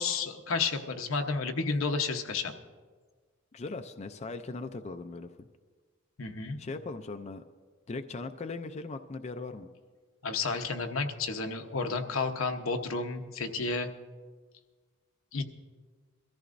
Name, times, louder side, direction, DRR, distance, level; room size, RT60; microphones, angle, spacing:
voice 1, 0.0-2.5 6.2-6.6 10.2-13.9 15.3-15.4, left 4 dB, 85° left, 5 dB, 1.0 m, -31 dB
voice 2, 3.5-5.3 6.6-7.4 7.9-9.7, left 3 dB, 35° left, 7 dB, 0.4 m, -39 dB
22.5 x 14.0 x 2.6 m, 1.5 s
head